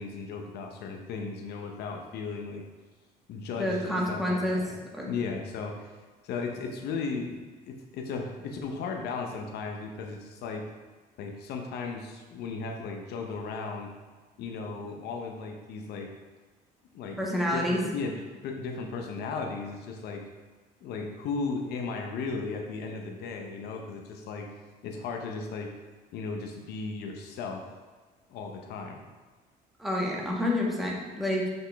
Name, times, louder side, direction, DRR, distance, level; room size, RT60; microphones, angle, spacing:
voice 1, 0.0-2.6 3.3-4.7 5.1-6.0 6.2-10.6 11.2-13.9 14.4-16.1 16.9-17.2 17.5-18.1 18.4-20.2 20.8-24.5 24.8-25.7 26.1-27.6 28.3-29.0, left 4 dB, 75° left, 2 dB, 0.8 m, -36 dB
voice 2, 3.6-4.6 4.9-5.2 17.2-17.8 29.8-31.5, left 1 dB, ahead, -3 dB, 1.3 m, -28 dB
6.1 x 5.3 x 3.4 m, 1.4 s
cardioid pair, 110°, 17 cm